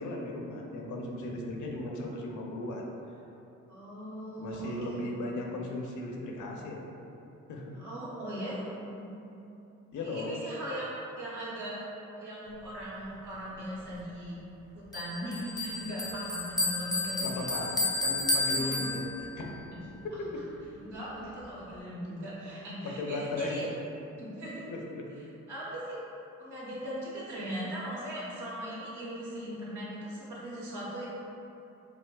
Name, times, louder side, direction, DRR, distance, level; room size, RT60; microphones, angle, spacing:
voice 1, 0.0-2.9 4.4-6.8 7.5-7.7 9.9-10.3 17.2-19.5 23.0-23.9 24.7-25.1, left 2 dB, 70° left, 0 dB, 0.6 m, -36 dB
voice 2, 3.7-5.0 5.3-5.6 7.7-9.0 10.0-11.8 12.2-14.4 14.7-17.5 18.5-18.8 19.7-19.8 20.1-20.2 20.8-23.6 24.2-24.7 25.5-26.0 26.4-31.1, equal, 75° right, -8 dB, 1.2 m, -39 dB
Bell, 14.9-19.4, left 2 dB, 15° left, 0.4 m, -32 dB
4.8 x 2.0 x 2.2 m, 2.9 s
cardioid pair, 70°, 31 cm